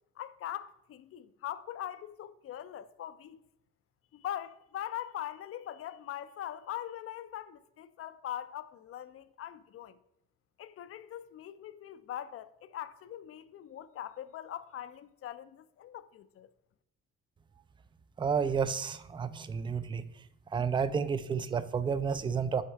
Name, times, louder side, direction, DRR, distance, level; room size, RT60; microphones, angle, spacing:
voice 1, 0.2-3.4 4.1-10.0 10.6-16.5, left 11 dB, 50° left, 0.4 m, -42 dB
voice 2, 18.2-20.0 20.5-22.6, right 6 dB, 15° right, 0.3 m, -31 dB
6.4 x 4.3 x 4.6 m
cardioid pair, 90°, 30 cm